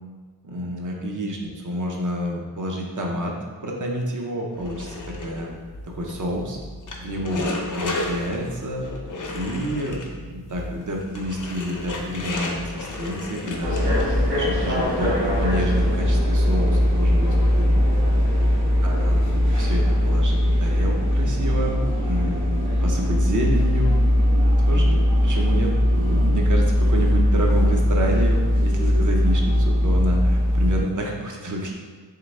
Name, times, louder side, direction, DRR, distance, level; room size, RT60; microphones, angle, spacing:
voice 1, 0.4-3.4 3.6-5.5 5.8-6.6 7.0-8.9 9.3-13.8 14.3-17.7 18.8-24.0 24.7-31.7, equal, 50° right, 0 dB, 0.7 m, -29 dB
sound 1, 4.6-14.3, left 2 dB, 50° left, 0.6 m, -33 dB
sound 2, 13.6-30.8, equal, 65° right, 1.4 m, -20 dB
3.7 x 3.5 x 3.2 m, 1.5 s
wide cardioid pair, 95°, 41 cm